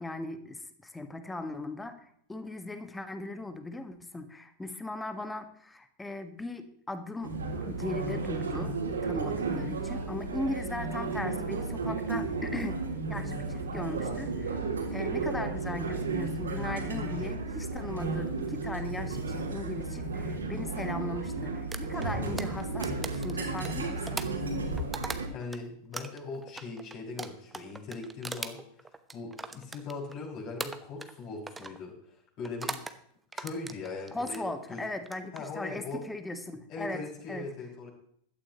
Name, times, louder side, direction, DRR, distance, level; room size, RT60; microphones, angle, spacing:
voice 1, 0.0-7.3 7.6-8.8 9.0-12.8 13.1-14.6 14.9-24.2 34.1-37.0 37.3-37.5, left 2 dB, 10° left, 10 dB, 1.4 m, -38 dB
sound 1, 7.2-25.3, right 3 dB, 70° right, 3.1 m, -33 dB
sound 2, 21.7-25.6 25.9-30.2 30.6-31.2 31.5-31.8 32.4-33.0 33.3-34.4 35.0-35.4, right 3 dB, 10° right, 1.0 m, -40 dB
voice 2, 25.3-28.6 29.1-31.9 32.4-32.8 33.3-34.8 35.3-36.0 36.7-37.9, left 3 dB, 40° left, -2 dB, 6.0 m, -40 dB
16.0 x 12.0 x 3.0 m, 0.66 s
figure-of-eight pair, 90°, 0 cm